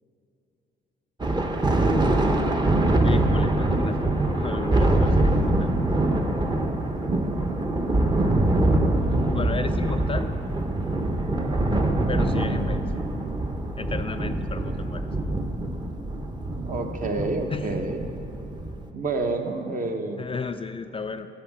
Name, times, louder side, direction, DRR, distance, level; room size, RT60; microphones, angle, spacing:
Thunder, 1.2-18.9, right 1 dB, 20° right, 0.9 m, -24 dB
voice 1, 3.0-5.7 9.3-10.3 12.1-13.0 13.8-15.1 17.5-17.7 20.2-21.3, left 5 dB, 30° left, 8 dB, 0.4 m, -33 dB
voice 2, 12.3-12.7 16.6-18.1 18.9-20.3, right 3 dB, 45° right, 4 dB, 1.0 m, -29 dB
11.5 x 5.4 x 7.4 m, 2.9 s
cardioid pair, 90°, 20 cm